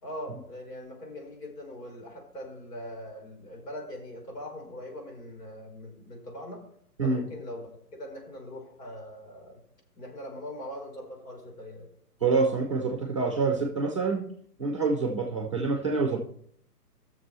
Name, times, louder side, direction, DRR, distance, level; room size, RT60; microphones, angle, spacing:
voice 1, 0.0-6.6 7.0-9.6 10.0-11.9, left 1 dB, 80° left, 1 dB, 4.1 m, -41 dB
voice 2, 7.0-7.3 12.2-14.3 14.6-16.2, right 4 dB, 20° right, 2 dB, 0.6 m, -26 dB
17.5 x 6.7 x 3.1 m, 0.67 s
hypercardioid pair, 170°, 47 cm